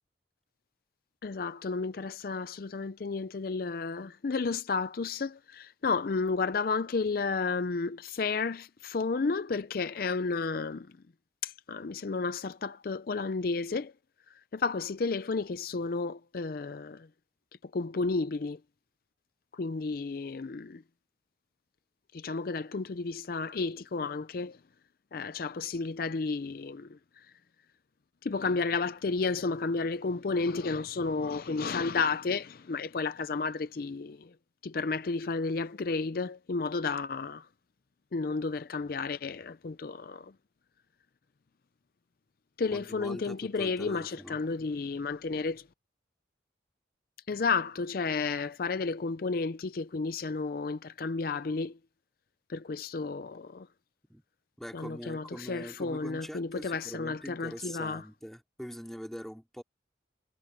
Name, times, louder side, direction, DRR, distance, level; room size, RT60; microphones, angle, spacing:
voice 1, 1.2-10.9 11.4-13.9 14.3-17.1 17.6-18.6 19.5-20.8 22.1-24.6 25.1-27.3 28.2-34.3 34.6-37.5 38.1-40.3 42.6-45.7 47.3-51.8 52.5-53.7 54.7-58.0, left 4 dB, 50° left, 0.5 m, -32 dB
voice 2, 42.7-44.4 54.1-54.2 54.6-59.6, equal, ahead, 3.0 m, -43 dB
head